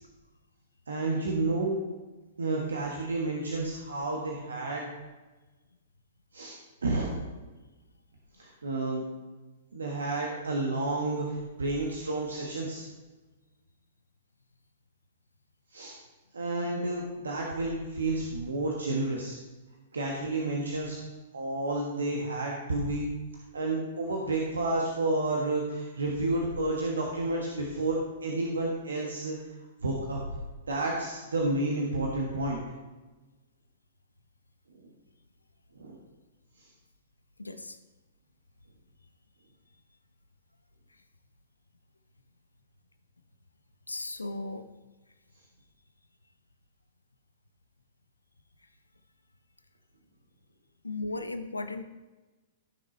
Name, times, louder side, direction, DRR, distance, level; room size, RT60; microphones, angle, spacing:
voice 1, 0.9-1.8 2.4-4.9 6.3-6.5 6.8-7.3 8.4-9.0 9.7-12.8 15.7-15.9 16.3-19.4 19.9-21.0 21.3-23.0 23.5-29.4 29.8-30.2 30.7-32.6 35.7-36.0, right 2 dB, 75° right, -1 dB, 1.3 m, -30 dB
voice 2, 37.4-37.8 43.9-44.7 50.8-51.8, left 2 dB, 85° left, 10 dB, 0.7 m, -36 dB
14.5 x 6.2 x 3.1 m, 1.2 s
figure-of-eight pair, 110°, 0 cm